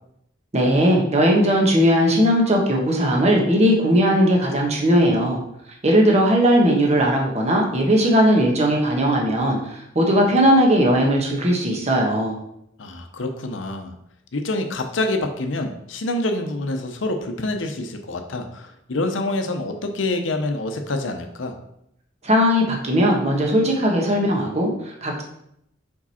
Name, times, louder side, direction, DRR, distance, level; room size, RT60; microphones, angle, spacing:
voice 1, 0.5-5.4 5.8-12.4 22.2-25.2, equal, 35° right, 0 dB, 1.2 m, -18 dB
voice 2, 12.8-13.9 14.3-21.5, left 2 dB, 75° left, 5 dB, 0.7 m, -26 dB
4.9 x 4.6 x 4.2 m, 0.77 s
head